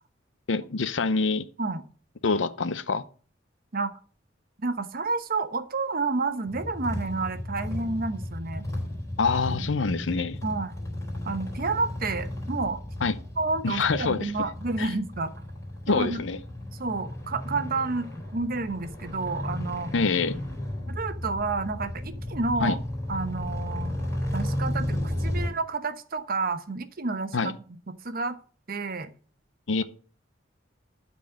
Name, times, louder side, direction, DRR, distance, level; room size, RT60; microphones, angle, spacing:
voice 1, 0.5-1.4 2.2-3.0 9.2-10.4 13.0-13.2 13.6-14.3 14.8-14.9 15.9-16.4 19.9-20.4 22.6-22.8 27.3-27.5 29.7-29.8, left 4 dB, 75° left, 0.7 m, -25 dB
voice 2, 4.6-8.7 9.6-9.7 10.4-10.7 11.2-12.8 13.4-15.3 15.9-16.2 16.8-19.9 20.9-22.8 23.1-23.9 24.3-27.5 28.0-28.4 28.7-29.1, right 3 dB, 50° right, 1.0 m, -30 dB
sound 1, 6.5-25.5, left 1 dB, 15° left, 3.5 m, -34 dB
12.0 x 4.3 x 7.7 m
head